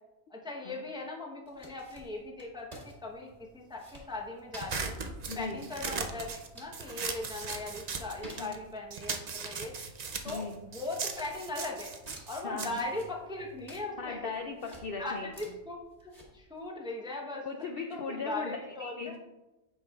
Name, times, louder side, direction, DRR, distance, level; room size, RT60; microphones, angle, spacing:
voice 1, 0.3-5.0 5.3-9.7 10.2-11.9 12.3-17.5 17.9-19.2, left 2 dB, 5° right, 0 dB, 0.5 m, -39 dB
sound 1, 1.4-16.7, right 1 dB, 25° right, 1.7 m, -55 dB
sound 2, 4.6-8.6 8.9-13.7, right 5 dB, 70° right, 0.3 m, -38 dB
voice 2, 5.3-5.6 8.4-8.5 10.3-10.6 12.4-12.8 14.0-15.3 17.4-19.2, left 4 dB, 85° left, 4 dB, 0.5 m, -38 dB
8.6 x 5.6 x 2.3 m, 1.0 s
omnidirectional pair, 1.5 m